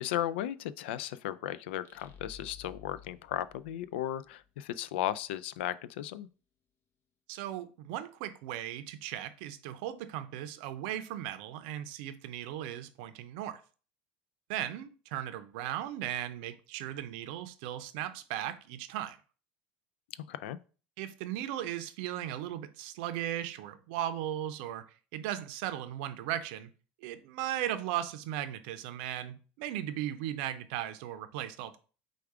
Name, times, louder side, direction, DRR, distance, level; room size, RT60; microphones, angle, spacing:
voice 1, 0.0-6.3 20.3-20.6, left 12 dB, 75° left, 0.3 m, -35 dB
sound 1, 1.8-4.5, left 7 dB, 40° left, 0.7 m, -53 dB
voice 2, 7.3-13.6 14.5-19.2 21.0-24.8 25.1-26.7 27.0-31.8, right 12 dB, 65° right, 0.6 m, -37 dB
4.7 x 2.4 x 4.7 m
hypercardioid pair, 90°, 6 cm